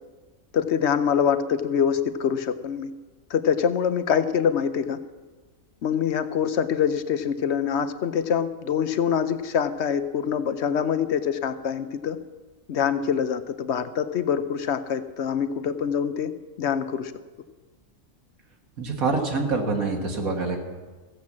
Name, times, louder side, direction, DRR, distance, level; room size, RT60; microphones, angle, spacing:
voice 1, 0.5-2.9 3.3-5.0 5.8-12.2 12.7-16.3 16.6-17.1, left 7 dB, 60° left, 12 dB, 0.9 m, -25 dB
voice 2, 18.8-20.6, right 3 dB, 80° right, 2 dB, 2.1 m, -25 dB
16.0 x 7.7 x 7.3 m, 1.3 s
omnidirectional pair, 1.5 m